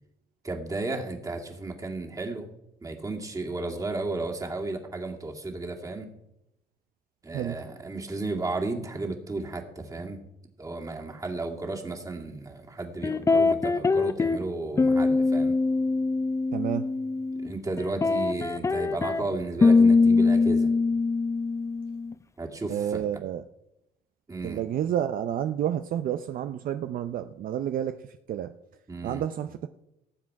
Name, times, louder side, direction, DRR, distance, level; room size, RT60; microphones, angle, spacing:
voice 1, 0.4-2.5 2.8-6.1 7.2-10.2 10.6-15.6 17.4-20.7 22.4-23.1 24.3-24.6 28.9-29.2, right 2 dB, 20° right, 2 dB, 2.2 m, -34 dB
voice 2, 7.3-7.6 16.5-16.9 22.7-23.4 24.4-28.0 28.3-28.5 29.0-29.7, right 10 dB, 55° right, 9 dB, 0.6 m, -30 dB
sound 1, 13.0-14.5 14.8-17.5 17.8-22.1, left 3 dB, 15° left, 0.5 m, -23 dB
18.5 x 7.6 x 4.7 m, 0.86 s
cardioid pair, 110°, 17 cm